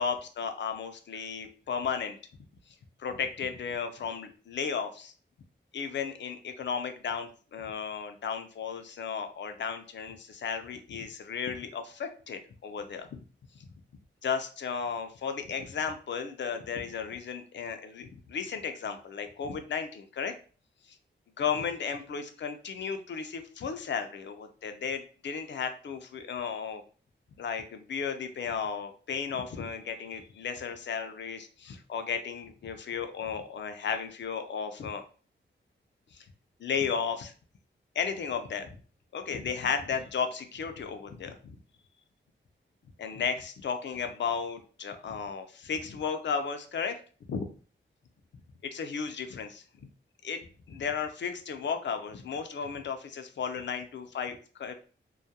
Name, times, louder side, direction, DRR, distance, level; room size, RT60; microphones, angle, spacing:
voice 1, 0.0-2.2 3.0-5.1 5.7-7.3 7.5-13.2 13.6-13.7 14.2-20.3 21.4-26.8 27.4-35.0 36.1-36.3 36.6-37.3 37.9-38.7 39.1-41.6 43.0-47.0 47.3-47.5 48.6-49.6 50.2-50.4 50.7-54.7, left 6 dB, 65° left, 7 dB, 0.4 m, -34 dB
2.3 x 2.1 x 2.7 m, 0.39 s
wide cardioid pair, 80°, 20 cm